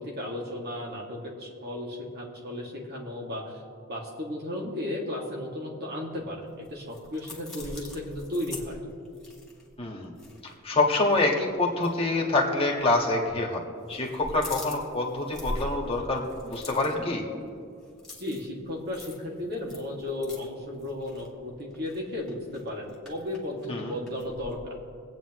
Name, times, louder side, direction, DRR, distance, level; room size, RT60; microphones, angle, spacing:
voice 1, 0.0-3.6 3.9-8.8 18.2-24.8, left 1 dB, 45° right, -2 dB, 2.2 m, -35 dB
sound 1, 6.3-10.8 11.1-11.3 11.7-11.9 12.8-13.4 13.7-24.6, left 1 dB, ahead, 2.2 m, -43 dB
voice 2, 9.8-10.1 10.4-13.6 13.9-17.2 23.7-23.9, left 2 dB, 25° left, -1 dB, 1.7 m, -26 dB
25.5 x 8.9 x 3.1 m, 2.3 s
head